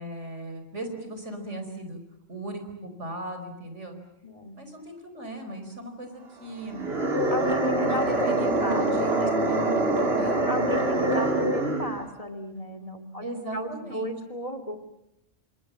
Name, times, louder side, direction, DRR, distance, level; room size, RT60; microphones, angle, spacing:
voice 1, 0.0-2.0 2.3-4.0 4.5-7.0 7.8-9.6 10.2-10.4 13.2-14.1, right 1 dB, 75° right, 6 dB, 5.1 m, -37 dB
voice 2, 4.2-4.6 7.3-8.2 8.6-9.4 10.5-13.2 13.5-14.8, equal, 30° left, 9 dB, 2.6 m, -35 dB
sound 1, 6.7-12.0, right 1 dB, 55° right, 2.9 m, -24 dB
29.5 x 26.0 x 7.5 m, 0.83 s
omnidirectional pair, 1.3 m